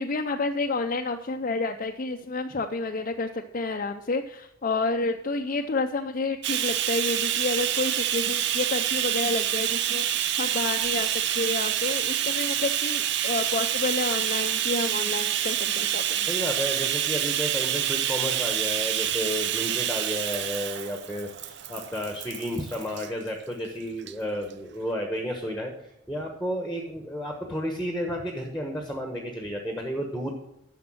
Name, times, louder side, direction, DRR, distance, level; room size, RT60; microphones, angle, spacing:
voice 1, 0.0-10.1 10.4-11.1 11.4-16.3, left 3 dB, 40° left, 3 dB, 0.5 m, -29 dB
Bathtub (filling or washing), 6.4-23.1 24.0-24.1 24.5-24.6, right 11 dB, 55° right, 0.5 m, -27 dB
voice 2, 16.3-25.7 26.1-30.3, equal, ahead, 3 dB, 1.0 m, -32 dB
10.5 x 6.5 x 6.2 m, 0.79 s
head